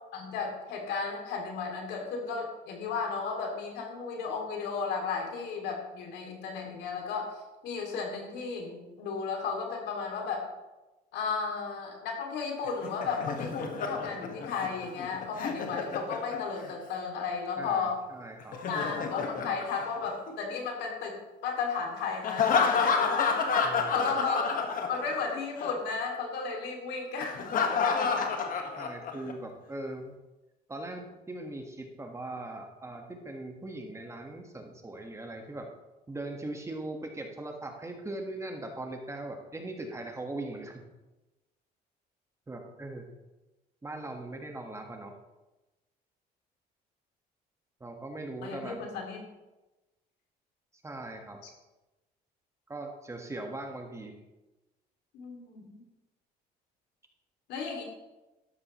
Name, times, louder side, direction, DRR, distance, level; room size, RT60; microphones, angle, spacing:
voice 1, 0.1-7.3 7.6-10.5 11.1-18.0 18.7-23.0 23.9-24.5 24.9-27.7 28.0-28.2 48.4-49.2 55.1-55.8 57.5-57.8, left 5 dB, 85° left, 2 dB, 2.6 m, -34 dB
Laughter, 12.7-16.7 18.4-20.5 22.2-25.3 25.6-25.7 27.2-29.3, left 5 dB, 55° left, 1.6 m, -29 dB
voice 2, 17.6-18.6 23.6-24.1 28.8-30.1 30.7-35.7 36.1-40.8 42.5-43.1 43.8-45.2 47.8-48.8 50.8-51.4 52.7-54.2, right 2 dB, 15° right, 3 dB, 1.6 m, -40 dB
13.0 x 11.0 x 3.1 m, 1.1 s
cardioid pair, 110°, 17 cm